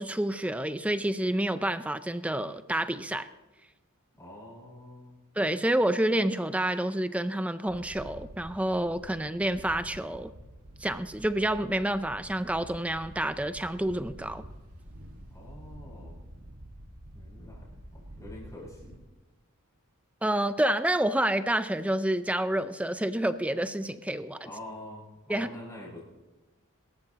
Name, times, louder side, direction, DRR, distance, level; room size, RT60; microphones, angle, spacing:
voice 1, 0.0-3.3 5.4-10.3 10.8-14.4 20.2-24.5 25.3-25.5, right 1 dB, 5° right, 11 dB, 0.5 m, -28 dB
voice 2, 4.2-5.2 15.3-16.3 17.1-19.0 24.4-26.0, left 1 dB, 15° left, -5 dB, 6.3 m, -46 dB
Wind, 7.7-19.0, equal, 85° right, 2.0 m, -48 dB
24.5 x 14.0 x 3.0 m, 1.1 s
head